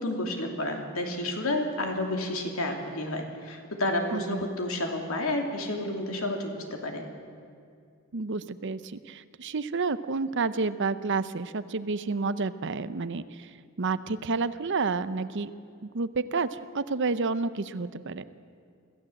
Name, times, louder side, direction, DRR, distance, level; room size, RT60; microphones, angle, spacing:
voice 1, 0.0-7.0, left 1 dB, 70° left, 3 dB, 2.9 m, -30 dB
voice 2, 4.1-4.5 8.1-13.5 13.8-15.5 15.8-18.2, right 4 dB, 55° right, 14 dB, 0.7 m, -30 dB
25.0 x 15.5 x 7.8 m, 2.3 s
head